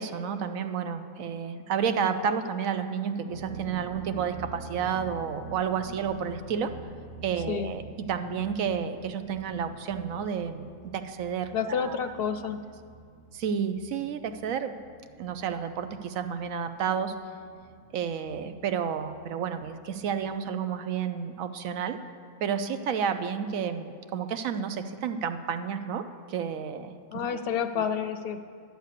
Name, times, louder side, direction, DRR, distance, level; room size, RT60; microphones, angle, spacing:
voice 1, 0.0-6.7 7.2-12.0 13.3-14.8 15.2-17.2 17.9-22.0 22.4-26.9 27.8-27.9, right 7 dB, 80° right, 9 dB, 1.1 m, -31 dB
sound 1, 3.3-20.3, right 3 dB, 60° right, 1.7 m, -47 dB
voice 2, 11.5-12.6 27.1-28.5, left 7 dB, 60° left, 10 dB, 0.7 m, -29 dB
11.5 x 8.0 x 6.6 m, 2.2 s
omnidirectional pair, 1.4 m